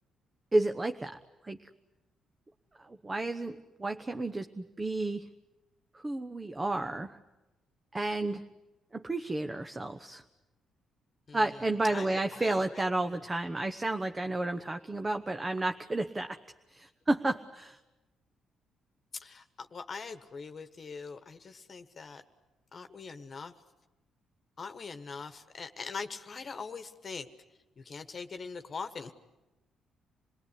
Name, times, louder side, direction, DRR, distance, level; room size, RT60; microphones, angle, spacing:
voice 1, 0.5-1.2 1.4-1.6 2.8-5.3 5.9-7.2 7.9-8.4 8.9-10.2 11.3-16.4 16.7-17.8, right 2 dB, 20° right, 7 dB, 0.9 m, -31 dB
voice 2, 11.3-11.6 11.9-12.8 19.1-22.2 22.7-23.5 24.6-27.3 27.8-29.1, left 5 dB, 40° left, 8 dB, 1.4 m, -42 dB
27.5 x 19.5 x 9.9 m, 1.0 s
cardioid pair, 90°, 0 cm